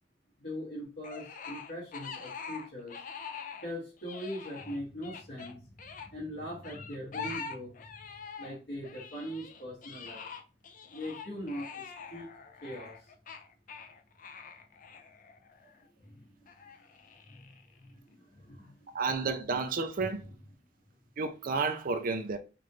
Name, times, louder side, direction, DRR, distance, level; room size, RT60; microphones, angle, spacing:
voice 1, 0.4-3.0 3.6-5.6 6.0-7.9 8.4-10.3 10.9-12.3 12.6-13.1 16.0-16.4 17.3-18.9 20.0-20.1, equal, 70° left, 1.9 m, -41 dB
sound 1, 1.0-3.7 4.0-6.1 6.6-8.6 8.8-15.8 16.5-17.8, left 5 dB, 45° left, 0.6 m, -45 dB
voice 2, 18.9-20.3 21.2-22.4, right 4 dB, 50° right, 0.5 m, -31 dB
5.9 x 2.5 x 3.1 m
head